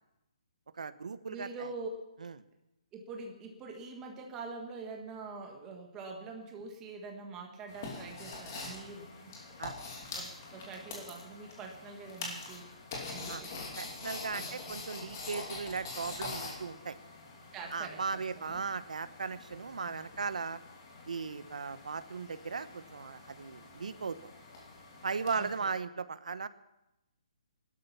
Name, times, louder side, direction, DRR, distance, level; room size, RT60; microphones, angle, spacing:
voice 1, 0.8-1.7 2.2-2.3 9.6-9.8 13.3-13.4 13.8-17.0 17.7-20.6 21.1-24.2 25.0-26.5, right 5 dB, 85° right, 13 dB, 1.0 m, -37 dB
voice 2, 1.3-1.9 2.9-9.4 10.1-12.7 13.1-13.7 14.3-14.8 17.5-18.6 19.8-20.3 25.3-25.7, right 4 dB, 10° right, 2 dB, 1.5 m, -45 dB
sound 1, 7.7-25.6, left 3 dB, 25° left, 2.9 m, -45 dB
17.0 x 12.5 x 5.8 m, 0.93 s
hypercardioid pair, 180°, 4 cm